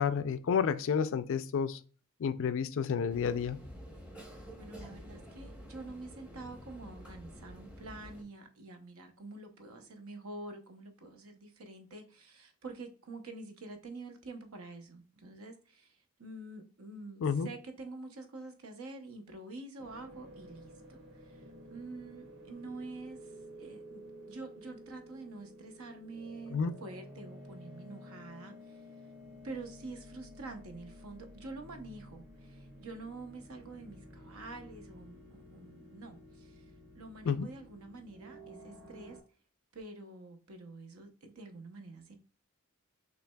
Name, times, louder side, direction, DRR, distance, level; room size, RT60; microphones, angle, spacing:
voice 1, 0.0-1.8 2.2-3.6 17.2-17.5 26.5-26.7 37.2-37.5, left 6 dB, 60° left, 0.4 m, -30 dB
sound 1, 3.1-8.2, equal, 5° right, 0.7 m, -49 dB
voice 2, 4.3-28.8 29.4-36.6 36.9-39.2 39.7-42.2, right 2 dB, 70° right, 0.8 m, -47 dB
sound 2, 19.8-39.2, equal, 55° right, 2.0 m, -52 dB
5.8 x 3.2 x 2.2 m
head